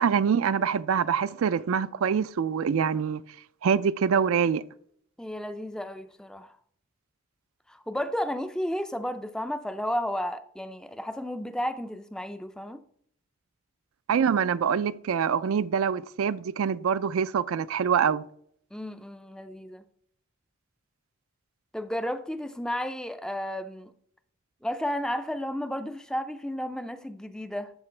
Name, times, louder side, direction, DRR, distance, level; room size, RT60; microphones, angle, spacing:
voice 1, 0.0-3.2 3.6-4.7 14.1-18.3, right 7 dB, 75° right, 0.4 m, -25 dB
voice 2, 5.2-6.6 7.7-12.8 18.7-19.8 21.7-23.9 24.6-27.7, equal, 5° left, 0.3 m, -33 dB
12.5 x 4.5 x 3.2 m
head